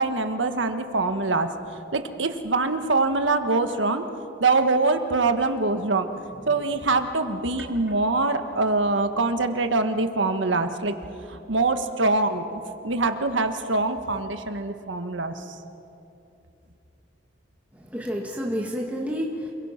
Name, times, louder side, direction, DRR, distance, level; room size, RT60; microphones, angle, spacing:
voice 1, 0.0-1.5 1.9-4.0 4.4-6.1 6.5-10.9 11.5-15.4, right 3 dB, 75° right, 7 dB, 1.5 m, -24 dB
voice 2, 17.7-19.5, equal, 10° right, -1 dB, 1.7 m, -30 dB
28.0 x 21.5 x 5.9 m, 2.7 s
head